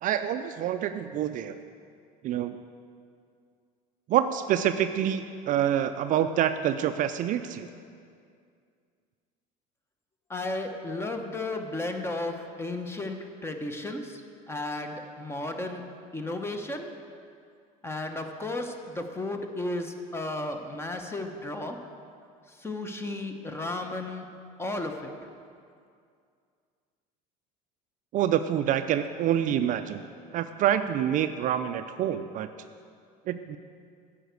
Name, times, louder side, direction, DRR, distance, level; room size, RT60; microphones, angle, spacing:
voice 1, 0.0-1.6 2.2-2.6 4.1-7.7 28.1-30.0 30.3-32.5 33.3-33.6, right 10 dB, 45° right, 9 dB, 0.4 m, -27 dB
voice 2, 10.3-13.2 13.4-14.2 14.5-15.8 16.1-16.9 17.8-21.8 22.5-24.3 24.6-25.1, left 2 dB, 15° left, 5 dB, 0.9 m, -34 dB
9.9 x 5.1 x 8.1 m, 2.3 s
supercardioid pair, 115°, 19 cm